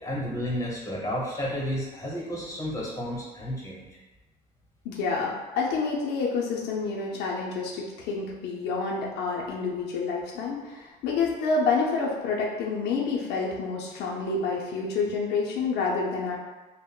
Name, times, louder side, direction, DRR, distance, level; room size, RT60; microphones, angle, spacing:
voice 1, 0.0-3.9, equal, 20° left, -3 dB, 0.9 m, -32 dB
voice 2, 4.8-16.4, left 4 dB, 80° left, -2 dB, 0.5 m, -28 dB
3.6 x 2.0 x 2.2 m, 1.2 s
cardioid pair, 110°, 17 cm